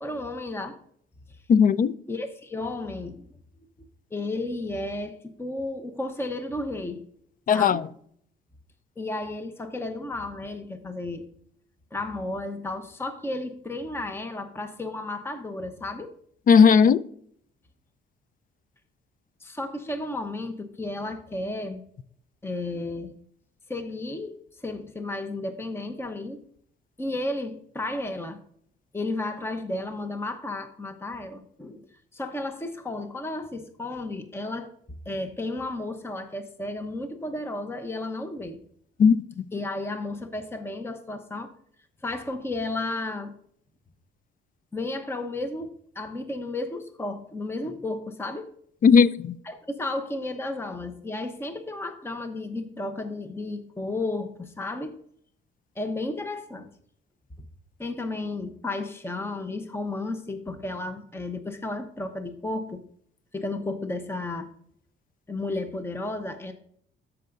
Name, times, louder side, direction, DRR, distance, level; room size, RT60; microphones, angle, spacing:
voice 1, 0.0-0.8 2.1-3.3 4.1-7.0 7.5-7.8 9.0-11.2 11.9-16.1 19.4-21.8 22.4-23.1 23.7-26.4 27.0-28.4 28.9-31.9 32.1-34.7 35.1-38.6 39.5-41.5 42.0-43.3 44.7-48.5 49.4-55.0 55.8-56.7 57.8-62.8 63.3-64.5 65.3-66.5, left 2 dB, 10° left, 0.8 m, -33 dB
voice 2, 1.5-1.9 7.5-7.8 16.5-17.0 39.0-39.4 48.8-49.3, left 6 dB, 45° left, 0.5 m, -17 dB
13.0 x 5.8 x 2.6 m
cardioid pair, 90°, 20 cm